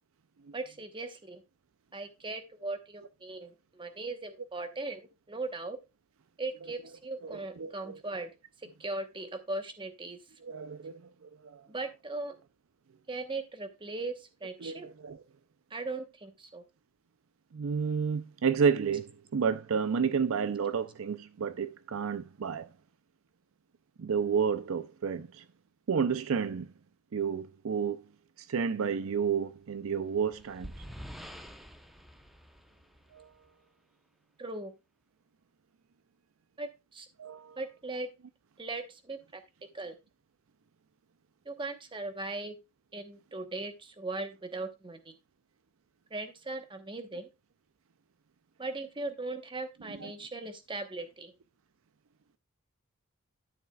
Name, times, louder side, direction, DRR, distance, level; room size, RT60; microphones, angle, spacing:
voice 1, 0.5-1.4 1.9-5.0 5.3-5.8 6.4-8.3 8.8-10.2 11.7-12.4 13.1-14.9 15.7-16.6 34.4-34.7 36.6-37.1 37.6-38.1 38.6-39.4 39.7-40.0 41.4-42.6 42.9-45.2 46.1-47.3 48.6-51.3, right 2 dB, 25° right, 1.0 m, -38 dB
voice 2, 7.2-8.0 10.4-11.7 14.6-15.2 17.5-22.7 24.0-25.4 25.9-26.7 27.1-28.0 28.4-30.7 33.1-33.3 37.2-37.6 49.9-50.1, right 6 dB, 65° right, 0.5 m, -31 dB
sound 1, 29.8-33.5, equal, ahead, 0.8 m, -47 dB
12.5 x 7.2 x 2.3 m
head